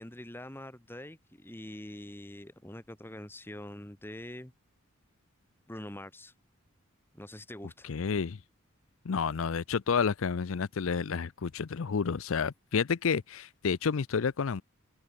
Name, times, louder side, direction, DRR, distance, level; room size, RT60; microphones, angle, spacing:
voice 1, 0.0-4.5 5.7-6.3 7.1-7.9, left 1 dB, 10° left, 1.5 m, -44 dB
voice 2, 7.8-8.4 9.0-14.6, left 6 dB, 75° left, 0.5 m, -30 dB
open air
head